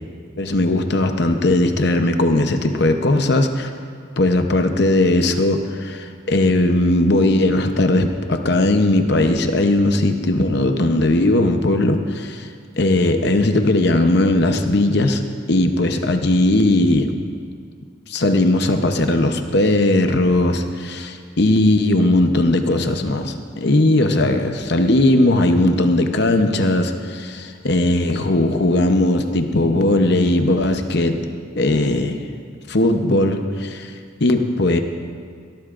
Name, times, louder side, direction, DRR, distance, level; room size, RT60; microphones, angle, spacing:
voice 1, 0.4-3.7 4.2-12.5 12.8-15.2 15.5-17.1 18.1-31.3 31.6-32.2 32.7-33.9 34.2-34.8, left 1 dB, 55° left, 6 dB, 0.8 m, -18 dB
21.5 x 13.5 x 2.6 m, 2.1 s
head